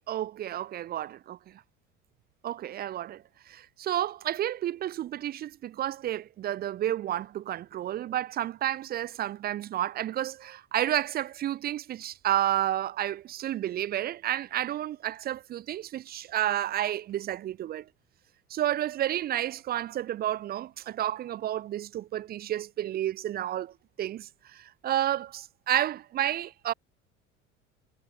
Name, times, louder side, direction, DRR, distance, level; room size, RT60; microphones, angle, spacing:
voice 1, 0.0-1.4 2.4-17.9 18.5-26.7, right 12 dB, 25° right, 0.5 m, -31 dB
figure-of-eight pair, 65°, 38 cm